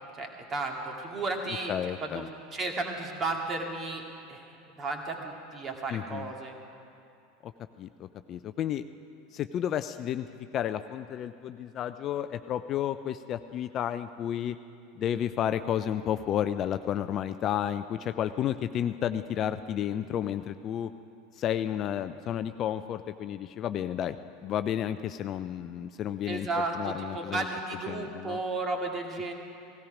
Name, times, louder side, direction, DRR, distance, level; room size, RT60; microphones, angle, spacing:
voice 1, 0.2-1.7 2.0-2.2 2.5-4.0 4.3-4.5 4.8-6.6 26.3-29.3, right 3 dB, 30° right, 2 dB, 2.2 m, -33 dB
voice 2, 1.7-2.3 5.9-6.3 7.4-7.5 7.8-8.8 9.3-10.3 10.5-14.6 15.0-20.9 21.4-24.2 24.4-27.5 27.9-28.4, left 10 dB, 40° left, 11 dB, 0.4 m, -31 dB
17.0 x 16.5 x 5.1 m, 2.6 s
figure-of-eight pair, 80°, 0 cm